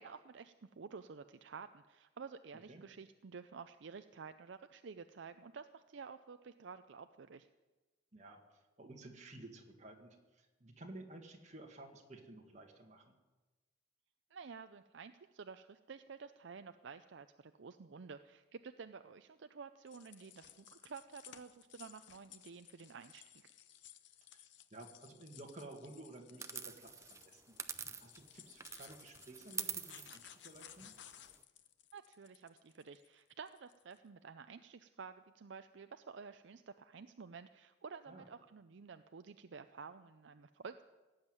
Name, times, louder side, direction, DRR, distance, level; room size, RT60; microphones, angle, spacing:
voice 1, 0.0-7.5 14.3-23.5 31.9-40.8, right 5 dB, 65° right, 10 dB, 0.5 m, -51 dB
voice 2, 8.8-13.1 24.3-27.4 28.0-30.9 38.1-38.2, right 2 dB, 35° right, 2 dB, 1.9 m, -54 dB
sound 1, 19.9-34.0, left 10 dB, 65° left, 0.7 m, -59 dB
sound 2, 26.4-28.3 28.6-31.4, right 6 dB, 15° right, 0.5 m, -45 dB
17.5 x 8.0 x 9.1 m, 1.2 s
head